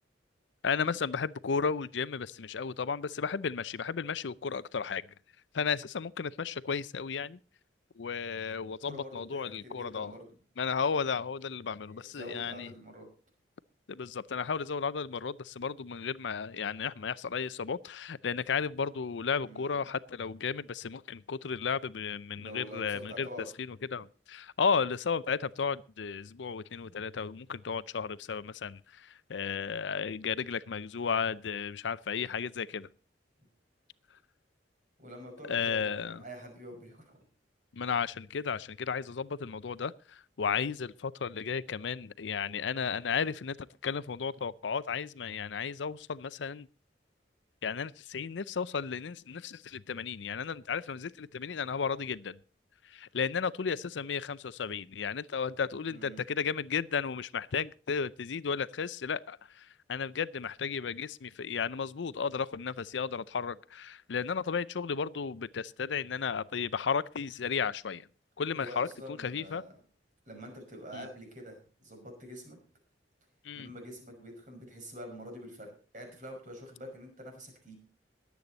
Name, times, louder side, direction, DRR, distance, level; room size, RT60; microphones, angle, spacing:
voice 1, 0.6-5.0 5.5-7.4 8.0-10.1 10.6-12.7 13.9-23.3 23.6-32.9 35.5-36.2 37.7-43.6 43.8-46.7 47.6-52.4 52.9-68.1 68.4-69.6 70.9-71.1 73.4-73.7, left 6 dB, 75° left, 0.5 m, -34 dB
voice 2, 8.8-10.3 11.7-13.1 19.4-19.9 22.4-23.5 26.8-27.0 31.0-31.3 35.0-37.2 55.9-56.2 68.5-69.8 70.3-72.6 73.5-77.7, equal, 45° right, 5.8 m, -46 dB
21.0 x 8.4 x 4.1 m
head